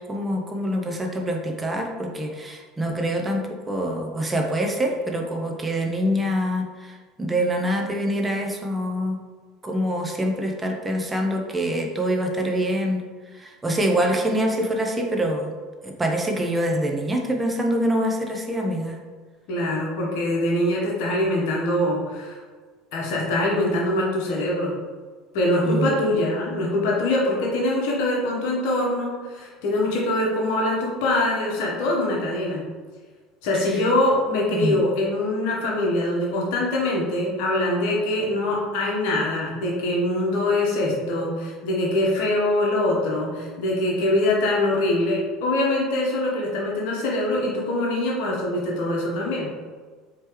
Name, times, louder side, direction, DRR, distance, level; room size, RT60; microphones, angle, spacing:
voice 1, 0.0-9.2 9.6-13.0 13.3-15.5 15.8-19.0 25.6-26.0 34.5-34.8, equal, 15° right, 2 dB, 0.7 m, -25 dB
voice 2, 19.5-22.4 22.9-24.7 25.3-32.6 33.4-49.5, left 1 dB, 55° left, -3 dB, 1.0 m, -23 dB
4.4 x 3.0 x 3.0 m, 1.5 s
figure-of-eight pair, 70°, 0 cm